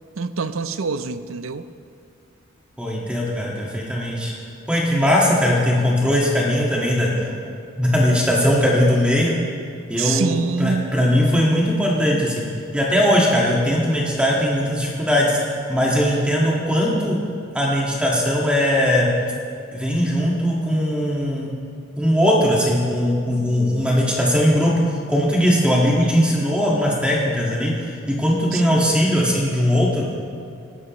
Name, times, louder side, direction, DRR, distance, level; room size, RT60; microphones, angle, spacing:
voice 1, 0.2-1.7 10.0-10.9 28.5-28.6, right 4 dB, 80° right, 12 dB, 0.6 m, -25 dB
voice 2, 2.8-4.3 4.7-7.1 7.8-9.4 9.9-12.4 12.7-17.2 17.5-19.1 19.7-21.5 22.0-27.7 28.1-30.1, equal, 5° right, -4 dB, 1.8 m, -19 dB
18.0 x 12.5 x 3.1 m, 2.4 s
head